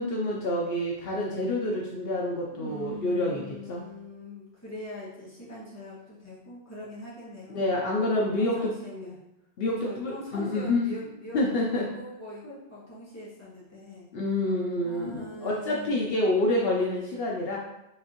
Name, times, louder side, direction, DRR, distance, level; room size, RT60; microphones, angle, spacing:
voice 1, 0.0-3.4 3.7-3.8 7.5-8.7 9.6-10.8 11.3-11.9 14.1-17.6, left 1 dB, 70° left, -2 dB, 0.9 m, -27 dB
voice 2, 2.5-7.7 8.4-9.2 9.8-14.1 14.8-16.0, left 1 dB, 15° left, -9 dB, 1.6 m, -42 dB
4.8 x 3.5 x 2.9 m, 0.88 s
omnidirectional pair, 1.0 m